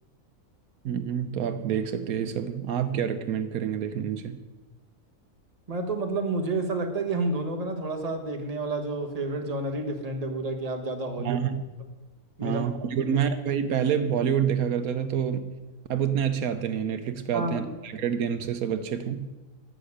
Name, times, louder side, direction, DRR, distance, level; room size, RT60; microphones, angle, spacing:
voice 1, 0.8-4.4 11.2-11.6 12.4-15.6 15.9-19.3, right 8 dB, 80° right, 10 dB, 1.2 m, -27 dB
voice 2, 5.7-11.4 12.4-12.6 13.0-13.1 17.3-17.7, right 2 dB, 25° right, 4 dB, 1.4 m, -30 dB
11.5 x 7.6 x 8.6 m, 1.2 s
omnidirectional pair, 1.5 m